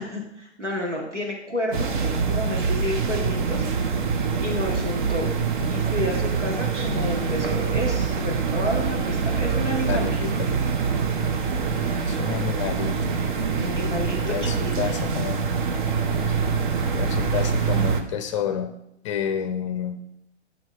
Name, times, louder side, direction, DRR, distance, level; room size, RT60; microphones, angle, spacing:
voice 1, 0.0-3.7 4.0-5.3 5.7-10.2 13.6-14.7, left 1 dB, 90° right, -2 dB, 1.8 m, -30 dB
sound 1, 1.7-18.0, right 5 dB, 45° right, 0.8 m, -25 dB
voice 2, 9.9-10.6 12.1-13.2 14.2-15.4 16.9-18.7 19.0-20.0, left 8 dB, 25° left, 7 dB, 0.6 m, -30 dB
8.9 x 3.6 x 5.6 m, 0.79 s
figure-of-eight pair, 115°, 35 cm